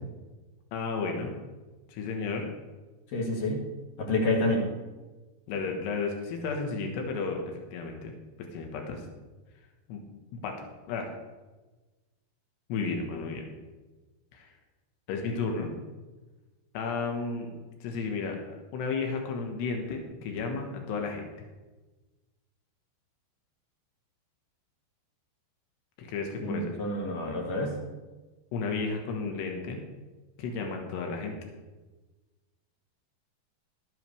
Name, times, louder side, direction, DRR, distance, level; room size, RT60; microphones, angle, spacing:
voice 1, 0.7-1.3 1.9-2.5 5.5-7.4 7.7-8.1 8.5-9.0 9.9-10.0 10.4-10.6 10.9-11.1 12.7-13.5 14.3-14.5 15.1-15.7 16.7-17.5 17.8-21.3 26.0-26.8 28.5-29.8 30.4-31.4, left 4 dB, 85° left, 3 dB, 3.5 m, -33 dB
voice 2, 3.1-3.6 4.0-4.6 26.4-27.7, left 2 dB, 60° left, -2 dB, 3.3 m, -28 dB
13.0 x 12.5 x 3.4 m, 1.2 s
omnidirectional pair, 4.8 m